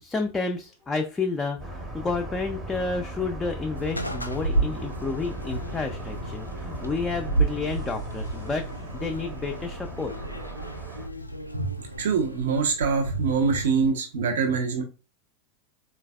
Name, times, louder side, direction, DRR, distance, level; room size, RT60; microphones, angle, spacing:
voice 1, 0.0-10.1, left 4 dB, 15° left, 3 dB, 0.4 m, -30 dB
sound 1, 1.6-11.1, right 1 dB, 25° right, 0.7 m, -38 dB
sound 2, 3.7-13.9, right 2 dB, 90° left, 0.3 m, -32 dB
voice 2, 12.0-14.8, right 5 dB, 60° right, 3 dB, 0.6 m, -24 dB
3.9 x 2.3 x 2.2 m, 0.32 s
figure-of-eight pair, 85°, 0 cm